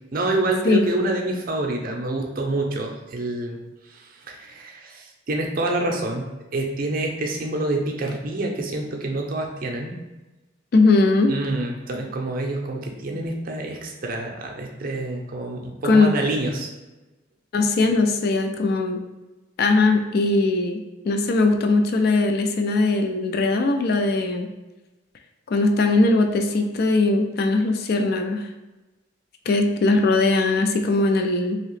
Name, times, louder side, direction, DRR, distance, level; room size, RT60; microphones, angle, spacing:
voice 1, 0.1-3.6 3.9-9.9 11.3-16.7, right 2 dB, 50° right, 1 dB, 0.5 m, -27 dB
voice 2, 10.7-11.3 15.8-16.1 17.5-19.0 19.6-24.5 25.5-28.5 29.5-31.6, left 3 dB, 55° left, 5 dB, 0.3 m, -20 dB
2.9 x 2.8 x 3.1 m, 1.1 s
head